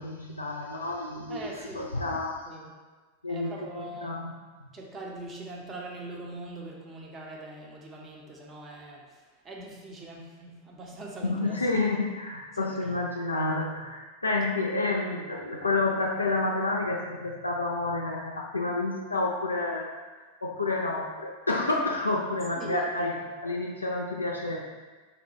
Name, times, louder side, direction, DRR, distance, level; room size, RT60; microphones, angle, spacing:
voice 1, 0.0-2.4 3.2-4.3 11.2-19.9 20.4-24.6, left 2 dB, 80° left, -1 dB, 0.3 m, -29 dB
voice 2, 1.3-1.9 2.4-2.7 3.3-4.2 4.7-9.0 9.4-11.6 12.5-12.9 22.5-23.3, right 2 dB, 20° right, -2 dB, 0.6 m, -42 dB
3.9 x 2.2 x 2.7 m, 1.4 s
figure-of-eight pair, 90°, 0 cm